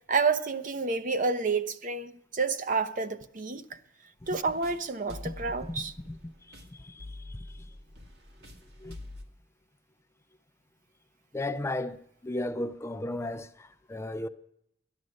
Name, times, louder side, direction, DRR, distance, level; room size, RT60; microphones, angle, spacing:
voice 1, 0.1-3.8 4.3-5.9, right 4 dB, 45° right, 0.7 m, -29 dB
sound 1, 4.2-9.2, left 1 dB, 65° right, 1.8 m, -46 dB
voice 2, 6.5-7.7 8.8-9.0 11.3-14.3, left 1 dB, 15° left, 0.4 m, -35 dB
13.0 x 10.5 x 6.4 m
head